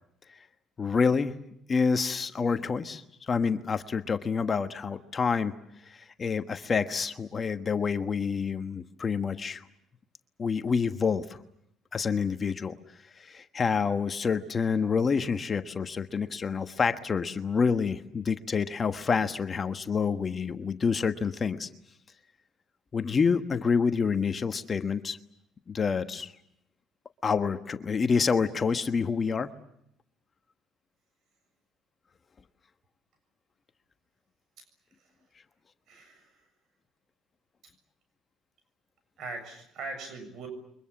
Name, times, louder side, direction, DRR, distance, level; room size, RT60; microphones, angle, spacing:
voice 1, 0.8-1.3 1.7-5.5 5.9-9.6 10.4-11.4 11.9-12.8 13.2-21.7 22.9-25.2 25.7-26.3 27.2-29.5, left 5 dB, 35° left, 9 dB, 1.3 m, -28 dB
voice 2, 35.9-36.4 39.2-40.5, right 3 dB, 65° right, 7 dB, 6.9 m, -41 dB
29.0 x 24.0 x 7.1 m, 0.74 s
cardioid pair, 100°, 0 cm